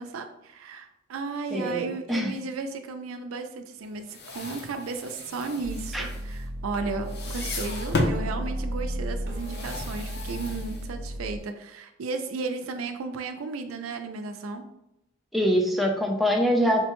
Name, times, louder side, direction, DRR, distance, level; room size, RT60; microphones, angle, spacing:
voice 1, 0.0-14.6, right 4 dB, 85° right, 7 dB, 0.4 m, -34 dB
voice 2, 1.5-2.4 5.9-6.1 15.3-16.9, equal, ahead, 0 dB, 0.4 m, -24 dB
sound 1, 3.9-6.7 7.0-8.3 9.3-11.2, left 2 dB, 55° left, 0.6 m, -34 dB
sound 2, 5.6-11.4, equal, 50° right, 0.7 m, -34 dB
4.5 x 2.1 x 2.9 m, 0.86 s
head